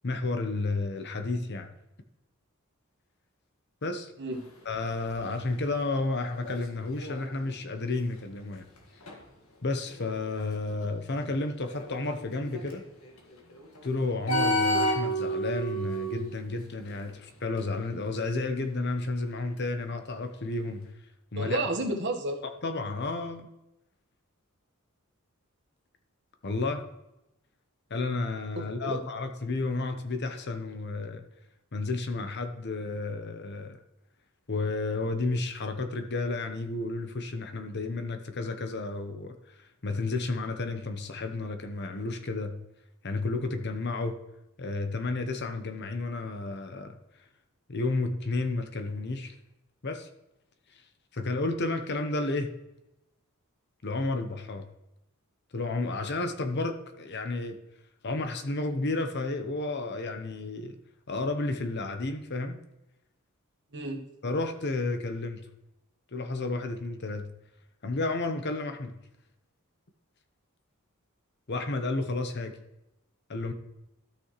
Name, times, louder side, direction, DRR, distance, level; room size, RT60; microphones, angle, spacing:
voice 1, 0.0-1.7 3.8-4.1 4.6-8.6 9.6-12.8 13.8-20.9 21.3-21.6 22.6-23.5 26.4-26.8 27.9-31.2 31.7-33.8 34.5-42.6 43.0-44.2 44.6-46.9 47.7-49.4 49.8-50.1 51.1-52.5 53.8-54.6 55.5-57.6 58.0-60.7 61.1-62.6 64.2-65.4 66.1-67.3 67.8-69.0 71.5-72.5 73.3-73.5, left 3 dB, 50° left, 7 dB, 1.0 m, -32 dB
sound 1, 4.3-10.9 11.6-17.2 17.6-17.9 19.6-19.7, right 1 dB, 75° left, 1.7 m, -33 dB
voice 2, 21.4-22.4 28.5-29.0 63.7-64.0, right 2 dB, 55° right, 2 dB, 1.4 m, -31 dB
13.0 x 6.2 x 3.1 m, 0.90 s
head